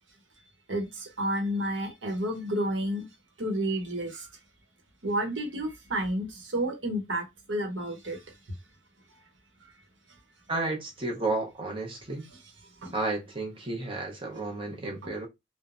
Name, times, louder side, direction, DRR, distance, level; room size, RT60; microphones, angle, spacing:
voice 1, 0.7-3.1 3.4-4.3 5.0-8.2 12.8-12.9, right 1 dB, 90° right, 0.9 m, -30 dB
voice 2, 10.5-12.3 12.9-15.3, right 2 dB, 30° right, 0.7 m, -32 dB
3.1 x 2.1 x 2.5 m
head